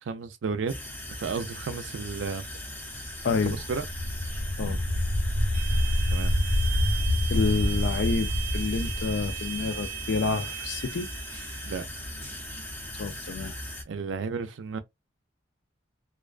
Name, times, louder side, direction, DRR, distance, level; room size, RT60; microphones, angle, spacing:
voice 1, 0.0-0.7 1.2-2.5 3.4-3.8 4.6-4.8 6.1-6.3 6.9-7.0 11.6-11.9 13.9-14.8, right 5 dB, 75° right, 0.4 m, -33 dB
sound 1, 0.7-13.8, left 1 dB, 10° left, 0.6 m, -39 dB
sound 2, 3.2-10.1, left 1 dB, 90° left, 0.9 m, -27 dB
voice 2, 3.2-3.6 4.6-4.8 7.3-11.1 13.0-13.5, left 4 dB, 65° left, 0.4 m, -28 dB
sound 3, 5.5-11.8, right 13 dB, 35° right, 0.6 m, -38 dB
2.5 x 2.2 x 2.4 m
head